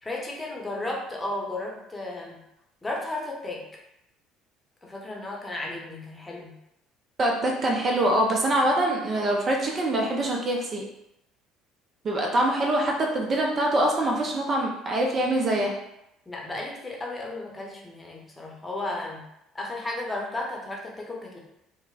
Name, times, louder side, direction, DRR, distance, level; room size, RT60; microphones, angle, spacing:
voice 1, 0.0-2.4 2.8-3.6 4.8-6.5 16.3-19.2 19.5-21.4, left 2 dB, 15° left, -2 dB, 0.8 m, -34 dB
voice 2, 7.2-10.9 12.0-15.8, right 1 dB, 35° right, 0 dB, 0.5 m, -24 dB
4.5 x 2.1 x 2.3 m, 0.83 s
figure-of-eight pair, 55°, 0 cm